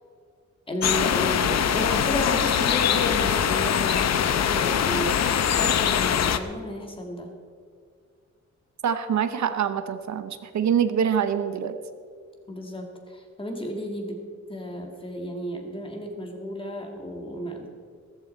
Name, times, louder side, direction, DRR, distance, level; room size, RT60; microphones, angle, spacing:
voice 1, 0.7-7.4 12.5-14.2 14.5-17.7, equal, 20° left, 2 dB, 1.9 m, -33 dB
sound 1, 0.8-6.4, left 8 dB, 60° left, 0.7 m, -23 dB
voice 2, 8.8-11.8, right 8 dB, 70° right, 10 dB, 0.8 m, -25 dB
15.0 x 14.0 x 4.3 m, 2.1 s
wide cardioid pair, 165°, 29 cm